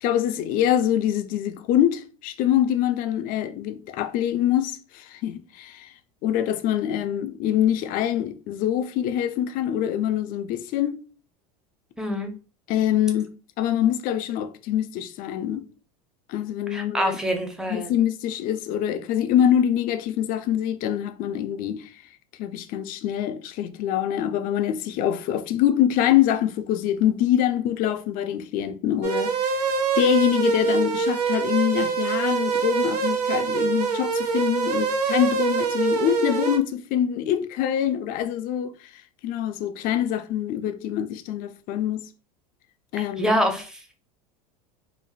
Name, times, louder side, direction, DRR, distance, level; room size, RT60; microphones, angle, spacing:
voice 1, 0.0-5.9 6.2-11.0 12.7-13.3 13.6-15.6 16.3-17.2 17.7-21.9 22.4-29.6 30.0-38.7 39.2-42.0 42.9-43.4, left 10 dB, 45° left, 0.4 m, -24 dB
voice 2, 12.0-12.3 16.7-17.9 43.2-44.0, equal, 5° right, 0.6 m, -26 dB
sound 1, 29.0-36.6, right 5 dB, 90° right, 0.5 m, -24 dB
3.2 x 2.0 x 2.3 m
hypercardioid pair, 90°, 20 cm